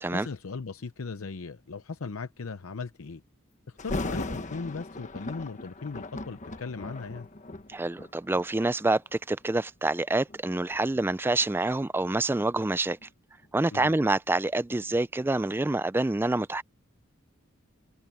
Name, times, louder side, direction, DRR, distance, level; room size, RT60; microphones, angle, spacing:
voice 1, 0.1-3.2 3.7-7.3 13.7-13.9, left 4 dB, 80° left, 0.7 m, -38 dB
Thunder, 3.8-8.8 9.4-9.6 10.3-13.1 13.4-13.5, left 2 dB, 35° left, 1.2 m, -38 dB
voice 2, 7.7-13.1 13.5-16.6, right 2 dB, 10° right, 0.3 m, -27 dB
head